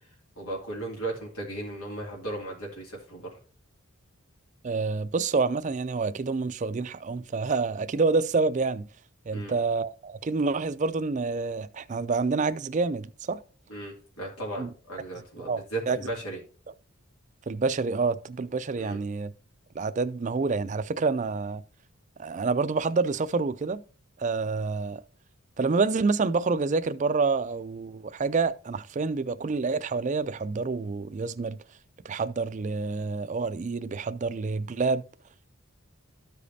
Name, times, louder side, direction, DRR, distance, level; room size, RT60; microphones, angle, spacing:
voice 1, 0.4-3.3 9.3-9.5 13.7-16.4 18.8-19.0, right 2 dB, 90° left, 2.6 m, -36 dB
voice 2, 4.6-8.9 9.3-13.4 14.6-14.7 15.4-16.0 17.5-19.3 19.8-21.6 22.2-23.8 24.2-25.0 25.6-31.6 32.0-35.0, right 4 dB, 35° right, 0.4 m, -27 dB
13.0 x 5.0 x 2.7 m
head